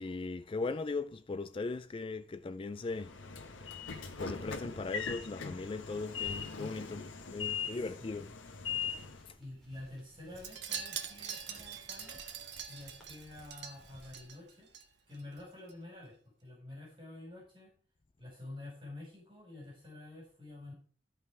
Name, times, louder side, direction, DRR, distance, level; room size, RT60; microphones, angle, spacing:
voice 1, 0.0-3.1 4.2-7.1 7.3-8.3 9.3-9.4, left 3 dB, 30° left, 0.3 m, -38 dB
Train / Sliding door, 2.8-9.3, left 6 dB, 90° left, 1.3 m, -40 dB
voice 2, 7.6-8.2 9.4-12.2 12.7-14.7 15.1-17.7 18.2-20.7, left 2 dB, 25° right, 5.1 m, -49 dB
sound 1, 8.8-14.3, right 1 dB, ahead, 3.9 m, -61 dB
Wind chime, 10.4-14.8 15.1-15.4 15.7-15.8, right 7 dB, 60° right, 1.4 m, -43 dB
13.5 x 5.6 x 4.7 m
head